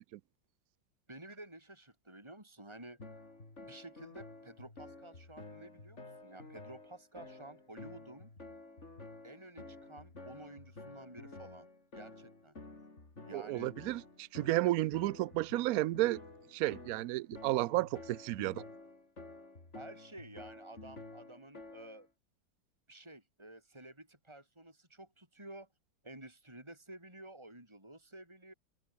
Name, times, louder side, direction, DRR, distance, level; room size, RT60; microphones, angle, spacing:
voice 1, 1.1-3.0 3.6-8.3 9.2-11.7 11.9-12.5 13.3-13.7 19.7-22.1 22.9-25.7 26.0-28.5, right 1 dB, 15° right, 6.1 m, -52 dB
sound 1, 3.0-22.1, left 2 dB, 35° left, 4.3 m, -51 dB
voice 2, 13.3-16.2 16.5-18.6, right 17 dB, 75° right, 0.8 m, -32 dB
omnidirectional pair, 2.0 m